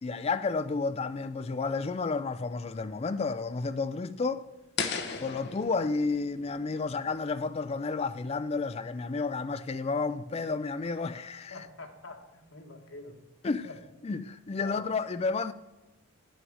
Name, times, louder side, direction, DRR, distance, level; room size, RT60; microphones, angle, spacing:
voice 1, 0.0-4.4 5.2-11.5 13.4-13.7 14.0-15.5, left 4 dB, 30° left, 0.4 m, -31 dB
sound 1, 4.8-7.8, left 5 dB, 55° left, 1.0 m, -37 dB
voice 2, 11.5-13.2 13.6-13.8 14.6-14.8, left 3 dB, 80° left, 1.8 m, -45 dB
9.4 x 6.3 x 6.3 m
head